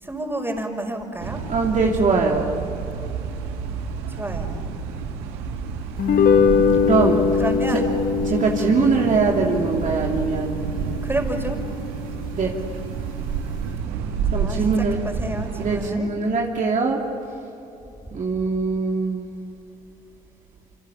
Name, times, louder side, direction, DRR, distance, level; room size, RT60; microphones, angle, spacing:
voice 1, 0.0-1.4 4.2-4.6 6.8-7.9 11.0-11.6 14.3-14.6 15.0-16.1, right 1 dB, 15° right, 3 dB, 5.5 m, -30 dB
sound 1, 1.2-15.9, right 6 dB, 85° right, 1.9 m, -30 dB
voice 2, 1.5-2.7 6.8-7.2 7.7-7.8 8.2-11.0 12.3-12.5 14.3-15.0 15.6-17.0 18.1-19.3, right 4 dB, 50° right, 0 dB, 2.8 m, -22 dB
sound 2, 6.0-12.5, left 6 dB, 60° left, 1.2 m, -22 dB
27.0 x 26.0 x 7.2 m, 3.0 s
hypercardioid pair, 60°, 16 cm